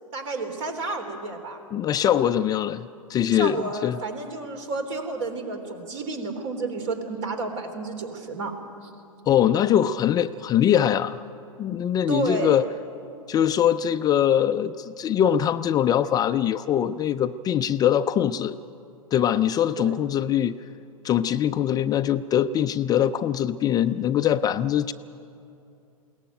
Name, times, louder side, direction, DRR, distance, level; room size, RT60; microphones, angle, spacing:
voice 1, 0.1-1.6 3.3-8.6 8.8-8.9 12.1-12.6 19.8-20.1, right 3 dB, 55° right, 6 dB, 3.6 m, -31 dB
voice 2, 1.7-4.0 9.3-11.2 11.6-12.6 13.3-18.6 19.1-20.5 21.0-24.9, left 10 dB, 20° left, 10 dB, 0.4 m, -22 dB
21.5 x 17.5 x 9.1 m, 2.6 s
hypercardioid pair, 110°, 18 cm